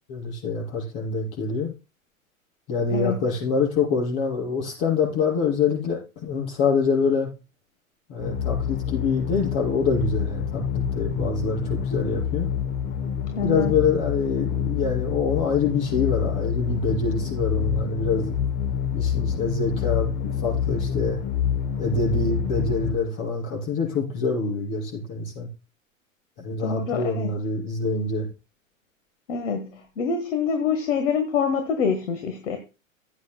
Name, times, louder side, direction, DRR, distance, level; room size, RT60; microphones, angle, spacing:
voice 1, 0.1-1.7 2.7-7.3 8.1-12.5 13.4-18.4 18.9-21.2 21.8-25.5 26.4-28.3, left 4 dB, 40° left, -2 dB, 6.0 m, -25 dB
voice 2, 2.9-3.2 13.4-13.7 26.6-27.3 29.3-32.6, left 6 dB, 65° left, 7 dB, 1.6 m, -26 dB
sound 1, 8.2-22.9, left 8 dB, 25° left, 1.0 m, -27 dB
16.0 x 8.6 x 2.2 m, 0.30 s
figure-of-eight pair, 95°, 40 cm